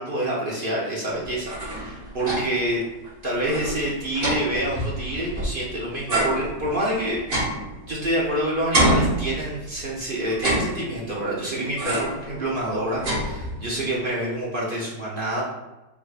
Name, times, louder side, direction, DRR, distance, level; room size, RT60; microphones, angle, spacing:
voice 1, 0.0-2.8 3.2-7.5 7.9-15.4, right 1 dB, 55° right, -6 dB, 0.6 m, -27 dB
sound 1, 1.2-2.7 3.0-3.1 3.4-5.6 6.1-8.3 8.7-9.8 10.3-11.2 11.8-12.3 12.6-13.8, right 1 dB, 40° right, 1.0 m, -26 dB
4.6 x 3.6 x 2.4 m, 1.0 s
omnidirectional pair, 2.0 m